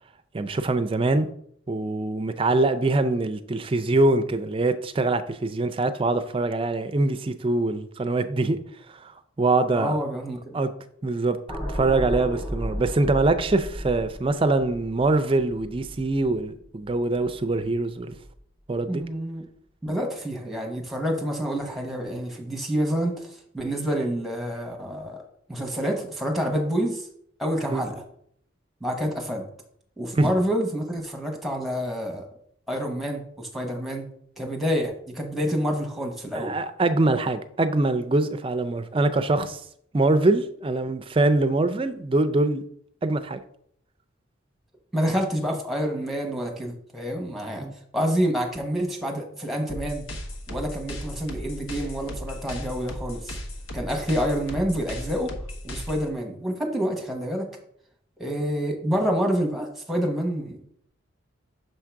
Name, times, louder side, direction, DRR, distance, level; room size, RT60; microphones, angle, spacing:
voice 1, 0.3-1.3 1.7-8.6 9.0-9.1 9.4-9.9 10.5-10.7 11.0-11.4 11.7-18.2 18.7-19.0 27.7-27.8 30.1-30.3 36.3-39.6 39.9-42.6 43.0-43.4 47.6-47.7, right 2 dB, 25° right, 0.3 m, -23 dB
voice 2, 9.7-10.6 18.9-19.5 19.8-25.2 25.5-27.1 27.4-28.0 28.8-29.5 30.0-32.3 32.7-34.1 34.4-36.6 44.9-47.7 47.9-50.1 50.5-53.4 53.7-55.3 55.6-57.5 58.2-60.7, equal, ahead, 0.9 m, -28 dB
sound 1, 11.5-17.8 18.1-18.4, equal, 20° left, 1.6 m, -35 dB
sound 2, 49.7-56.1, equal, 80° left, 1.1 m, -36 dB
6.6 x 3.7 x 4.5 m
head